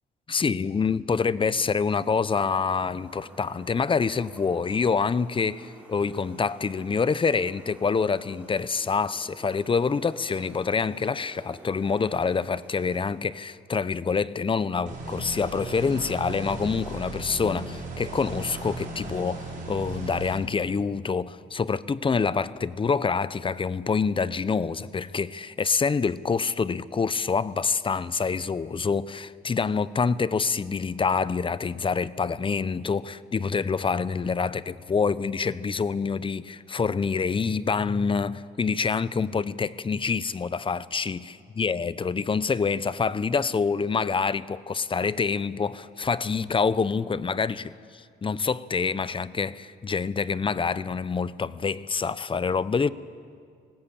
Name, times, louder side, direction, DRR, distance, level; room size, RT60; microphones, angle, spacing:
voice 1, 0.3-52.9, left 5 dB, 25° left, 0.7 m, -26 dB
sound 1, 2.8-13.1, right 1 dB, 10° right, 6.2 m, -50 dB
sound 2, 14.9-20.4, right 2 dB, 40° right, 5.4 m, -36 dB
20.0 x 18.5 x 8.5 m
cardioid pair, 90°, 20 cm